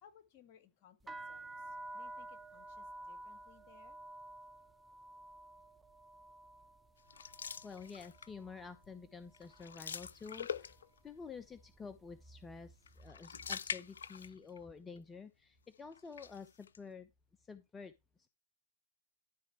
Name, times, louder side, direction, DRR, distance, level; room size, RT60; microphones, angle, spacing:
voice 1, 0.0-4.0, left 9 dB, 45° left, 1.9 m, -64 dB
sound 1, 1.0-8.9 9.2-9.9 10.5-10.8 11.0-12.5, right 1 dB, 10° right, 0.6 m, -51 dB
sound 2, 7.1-8.4 8.8-9.1 9.3-11.1 12.8-14.6 15.0-15.1 15.9-16.8, left 7 dB, 75° left, 0.4 m, -44 dB
voice 2, 7.6-10.8 11.0-17.1 17.4-17.9, left 5 dB, 15° left, 0.8 m, -50 dB
12.5 x 4.6 x 4.5 m
figure-of-eight pair, 100°, 0 cm